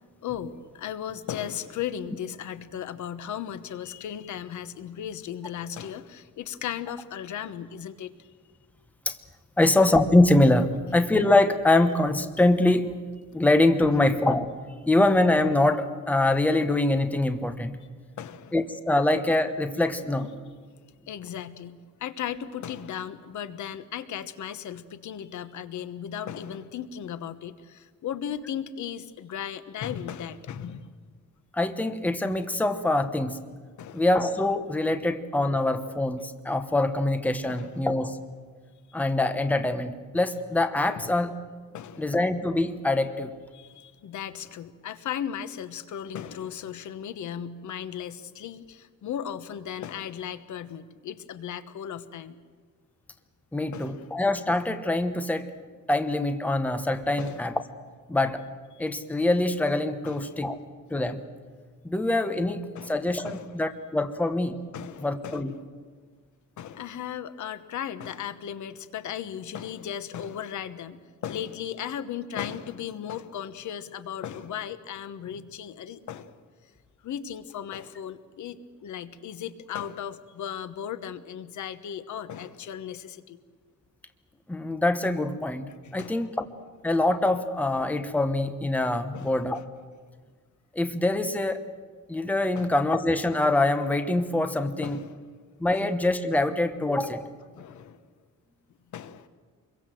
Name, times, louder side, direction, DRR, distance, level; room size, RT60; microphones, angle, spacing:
voice 1, 0.2-8.1 9.6-9.8 18.2-18.5 21.1-30.9 33.8-34.1 35.0-35.1 37.5-37.7 41.0-41.1 41.7-42.2 43.5-52.4 53.7-54.1 57.2-57.4 58.8-58.9 60.0-60.4 62.4-63.6 64.7-65.5 66.6-76.3 77.0-78.6 78.8-83.4 85.8-86.3 89.1-89.3 92.5-92.7 94.8-95.2 97.6-98.0 98.9-99.3, left 9 dB, 70° left, 12 dB, 1.2 m, -36 dB
voice 2, 9.6-12.9 13.3-17.7 18.5-20.3 31.5-33.4 33.9-38.2 38.9-41.3 42.0-43.3 53.5-55.5 55.9-57.5 58.1-58.4 58.8-60.6 60.9-61.2 61.8-62.6 62.9-64.6 65.0-65.5 84.5-86.5 86.8-89.6 90.7-91.6 92.1-95.0 95.6-97.3, left 2 dB, 5° left, 8 dB, 1.1 m, -24 dB
26.5 x 22.5 x 7.7 m, 1.5 s
cardioid pair, 175°, 30 cm